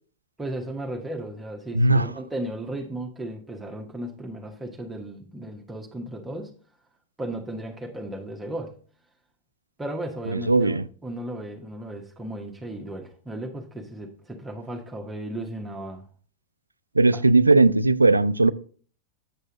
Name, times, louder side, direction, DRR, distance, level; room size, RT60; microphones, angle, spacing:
voice 1, 0.4-6.5 7.2-8.8 9.8-16.1 17.1-17.2, right 1 dB, 10° right, 1.2 m, -35 dB
voice 2, 1.7-2.1 10.3-10.8 16.9-18.5, right 3 dB, 80° right, 0.4 m, -18 dB
8.6 x 8.0 x 3.0 m
figure-of-eight pair, 90°, 0 cm